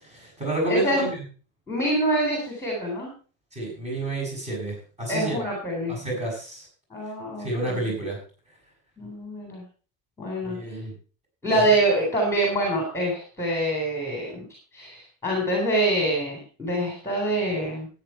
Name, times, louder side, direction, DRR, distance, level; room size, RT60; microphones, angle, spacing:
voice 1, 0.0-1.2 3.5-5.4 5.9-6.7 7.4-8.2 10.4-10.9, right 1 dB, 15° right, -1 dB, 6.9 m, -29 dB
voice 2, 0.7-1.1 1.7-3.1 5.1-6.0 6.9-7.9 9.0-9.6 10.2-10.8 11.4-14.4 14.7-17.9, right 1 dB, 5° left, 0 dB, 3.6 m, -25 dB
13.5 x 9.5 x 4.4 m, 0.38 s
supercardioid pair, 170°, 42 cm